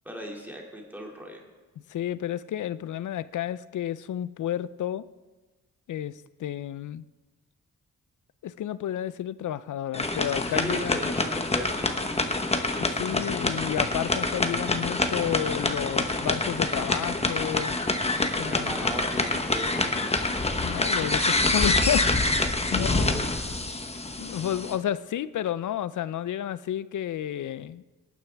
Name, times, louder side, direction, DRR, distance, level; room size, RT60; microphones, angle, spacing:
voice 1, 0.0-1.4 10.5-12.6 18.3-20.1 22.8-23.3, equal, 5° right, 0 dB, 2.4 m, -38 dB
voice 2, 1.9-5.1 5.9-7.0 8.4-11.1 13.0-17.8 18.2-18.8 20.6-22.1 22.7-23.2 24.2-27.8, left 11 dB, 65° left, 17 dB, 0.5 m, -31 dB
sound 1, 9.9-24.8, left 2 dB, 20° left, 1.1 m, -26 dB
18.5 x 9.3 x 3.4 m, 1.2 s
cardioid pair, 80°, 32 cm